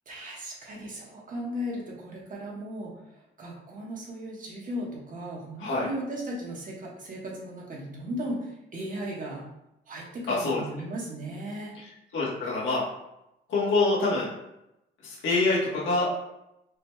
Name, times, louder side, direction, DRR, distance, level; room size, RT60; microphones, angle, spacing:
voice 1, 0.1-9.4 9.9-11.8, equal, 40° right, -3 dB, 1.4 m, -36 dB
voice 2, 10.3-10.6 12.1-12.8 13.5-14.3 15.0-16.1, left 3 dB, 75° left, -6 dB, 1.4 m, -25 dB
5.0 x 2.9 x 2.3 m, 0.88 s
cardioid pair, 90°, 20 cm